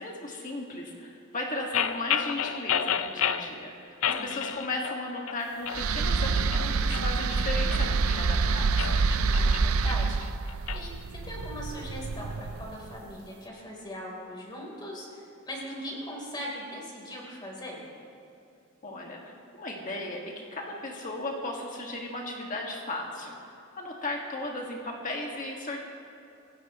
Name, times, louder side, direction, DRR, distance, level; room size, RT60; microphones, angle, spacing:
voice 1, 0.0-9.0 18.8-23.3 23.8-25.8, left 2 dB, 40° left, 0 dB, 1.9 m, -36 dB
sound 1, 1.7-3.5 4.0-5.0 5.3-5.8 6.3-8.2 8.7-10.8, left 8 dB, 75° left, 0.6 m, -31 dB
voice 2, 4.0-4.4 9.3-10.2 10.7-10.9 11.2-17.8, equal, 20° left, -2 dB, 3.8 m, -40 dB
sound 2, 5.7-12.9, right 4 dB, 85° right, 0.6 m, -27 dB
28.0 x 16.0 x 3.1 m, 2.7 s
head